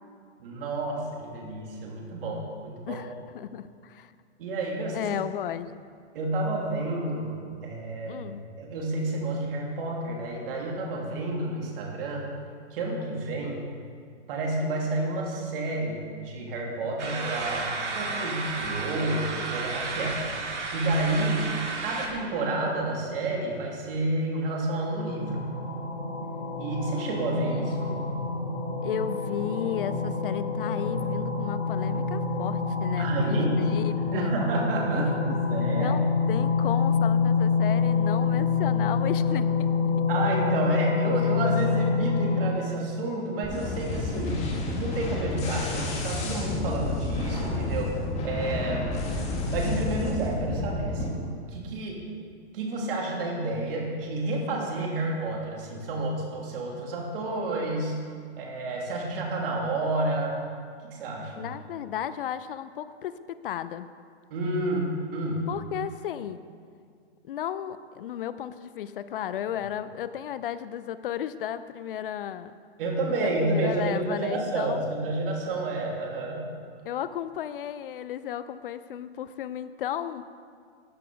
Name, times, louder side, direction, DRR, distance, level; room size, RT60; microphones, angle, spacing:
voice 1, 0.4-3.0 4.4-5.1 6.1-8.2 8.6-12.3 12.7-13.6 14.3-20.2 20.7-21.5 21.8-25.4 26.6-28.0 33.0-36.0 40.1-44.5 44.7-49.0 49.5-52.1 52.5-58.0 58.4-60.3 60.8-61.5 64.3-65.4 72.8-76.5, right 2 dB, 55° right, -1 dB, 3.0 m, -30 dB
voice 2, 2.9-4.1 4.9-5.7 8.1-8.4 28.8-34.3 34.9-35.4 35.8-39.7 61.4-63.9 65.5-66.4 67.2-72.5 73.2-74.8 76.8-80.2, left 10 dB, 50° left, 14 dB, 0.6 m, -34 dB
sound 1, 17.0-22.1, right 3 dB, 85° right, 2.5 m, -32 dB
sound 2, 24.9-42.5, left 5 dB, 65° left, 3.2 m, -27 dB
sound 3, 43.4-51.1, left 2 dB, 20° left, 1.9 m, -30 dB
13.5 x 9.1 x 5.1 m, 2.1 s
hypercardioid pair, 145°, 34 cm